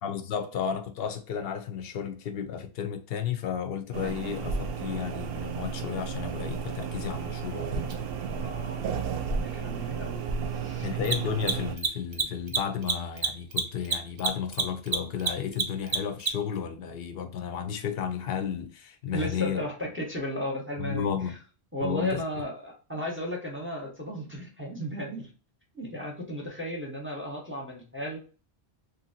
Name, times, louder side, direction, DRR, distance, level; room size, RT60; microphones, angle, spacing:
voice 1, 0.0-7.9 10.8-19.6 20.8-21.3 21.8-22.2, left 8 dB, 70° left, 0.8 m, -33 dB
sound 1, 3.9-11.8, right 6 dB, 70° right, 0.7 m, -33 dB
Mechanisms, 7.9-8.0 10.9-16.6, right 5 dB, 45° right, 0.4 m, -28 dB
voice 2, 8.3-8.9 9.4-10.9 19.1-21.4 21.7-25.3 25.7-28.2, equal, 10° right, 0.8 m, -35 dB
3.0 x 2.6 x 2.7 m
omnidirectional pair, 1.1 m